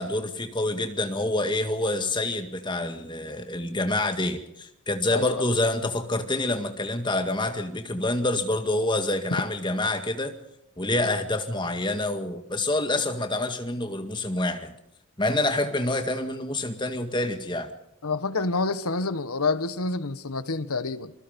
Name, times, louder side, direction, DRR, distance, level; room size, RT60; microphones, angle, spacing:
voice 1, 0.0-10.4 10.8-14.7 15.2-17.7, left 2 dB, 20° left, 7 dB, 1.9 m, -27 dB
voice 2, 5.1-5.4 18.0-21.1, left 3 dB, 85° left, 13 dB, 1.3 m, -28 dB
27.5 x 21.5 x 5.3 m, 0.79 s
head